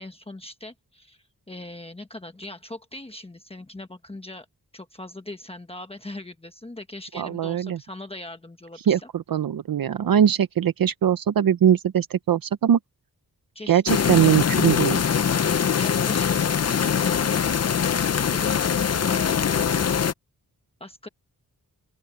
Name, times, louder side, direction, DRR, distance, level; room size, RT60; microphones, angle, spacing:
voice 1, 0.0-4.5 4.7-9.1 13.5-14.4 15.8-17.5 18.1-19.9 20.8-21.1, left 2 dB, 15° left, 1.2 m, -40 dB
voice 2, 7.2-7.8 8.9-12.8 13.7-15.0, right 9 dB, 70° right, 0.7 m, -21 dB
sound 1, 13.9-20.1, left 7 dB, 45° left, 0.6 m, -22 dB
open air
wide cardioid pair, 155°, 36 cm